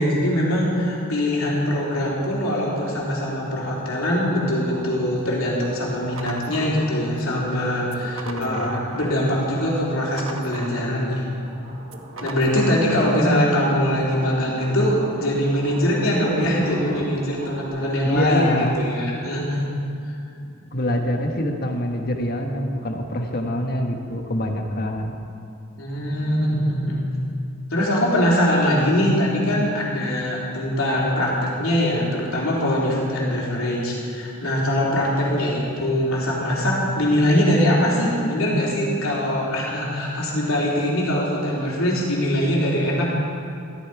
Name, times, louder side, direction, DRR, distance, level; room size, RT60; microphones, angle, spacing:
voice 1, 0.0-11.3 12.2-19.6 25.8-27.0 27.7-43.1, equal, 90° left, -4 dB, 3.4 m, -22 dB
sound 1, 1.6-17.7, equal, 45° right, 4.1 m, -39 dB
sound 2, 6.2-7.3 7.8-9.3 9.6-11.2 11.8-13.2, right 3 dB, 85° right, 1.1 m, -39 dB
voice 2, 8.2-8.8 18.0-18.8 20.7-25.2, left 1 dB, 50° left, 3 dB, 1.3 m, -25 dB
14.0 x 13.5 x 4.8 m, 2.5 s
head